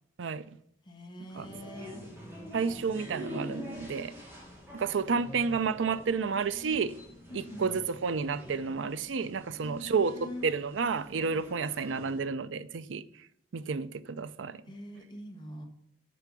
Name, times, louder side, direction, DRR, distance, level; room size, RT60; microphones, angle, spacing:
voice 1, 0.8-2.0 7.3-7.8 9.6-10.4 14.7-15.6, left 1 dB, 25° left, 1.4 m, -43 dB
sound 1, 1.3-12.2, equal, 10° right, 2.8 m, -46 dB
voice 2, 2.5-4.1 4.7-6.9 7.3-13.0 13.5-14.6, right 5 dB, 85° right, 0.5 m, -31 dB
6.9 x 6.7 x 6.2 m
head